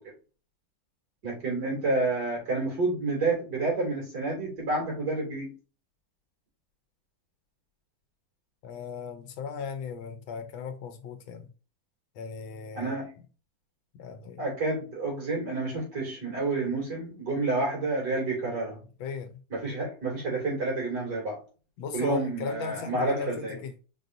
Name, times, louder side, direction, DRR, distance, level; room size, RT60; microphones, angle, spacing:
voice 1, 1.2-5.5 12.7-13.1 14.4-18.8 19.5-21.4 21.9-23.6, right 2 dB, 55° right, 3.2 m, -29 dB
voice 2, 8.6-11.5 12.2-13.0 13.9-14.4 19.0-19.4 21.8-23.7, left 6 dB, 80° left, 1.5 m, -37 dB
5.3 x 3.8 x 2.6 m
omnidirectional pair, 2.1 m